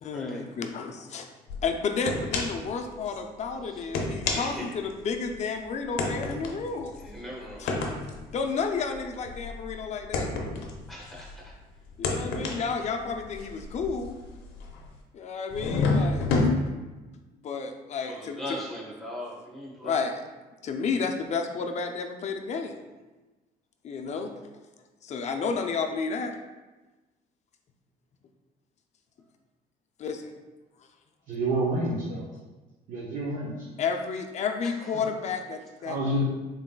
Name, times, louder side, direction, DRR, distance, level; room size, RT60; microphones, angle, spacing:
voice 1, 0.0-1.3 1.6-7.0 7.6-7.8 8.3-10.3 12.0-14.2 15.1-16.3 17.4-18.6 19.8-20.2 20.6-22.8 23.8-24.3 25.0-26.3 30.0-30.3 33.8-36.0, left 5 dB, 40° left, 5 dB, 0.4 m, -31 dB
sound 1, 1.5-1.6 2.1-2.7 3.1-3.2 3.8-5.4 6.0-11.5 11.9-15.0 15.5-16.5, left 3 dB, 90° left, 0.6 m, -30 dB
voice 2, 7.0-7.6 10.9-11.3 18.0-19.9, left 1 dB, ahead, -5 dB, 1.2 m, -39 dB
voice 3, 31.3-32.2 32.9-33.5 34.9-35.1 35.8-36.2, right 1 dB, 50° right, -5 dB, 0.8 m, -28 dB
3.9 x 3.7 x 2.2 m, 1.2 s
cardioid pair, 110°, 17 cm